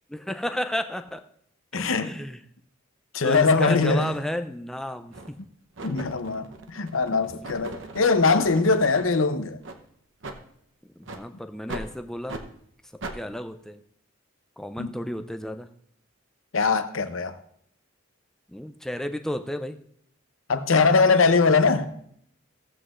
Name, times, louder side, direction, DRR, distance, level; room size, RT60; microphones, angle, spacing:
voice 1, 0.1-1.2 1.7-2.4 3.2-5.4 11.0-12.4 13.1-13.8 14.6-15.7 18.5-19.8, left 1 dB, ahead, 0.4 m, -32 dB
voice 2, 1.7-2.1 3.1-4.1 5.8-9.6 14.8-14.9 16.5-17.4 20.5-21.9, left 4 dB, 75° left, 0.7 m, -21 dB
sound 1, 4.3-4.4 5.1-5.4 5.8-9.2 9.6-9.8 10.2-10.4 11.0-11.2 11.7-11.9 12.3-12.5 13.0-13.2, right 2 dB, 65° right, 0.8 m, -39 dB
16.0 x 8.0 x 2.5 m
head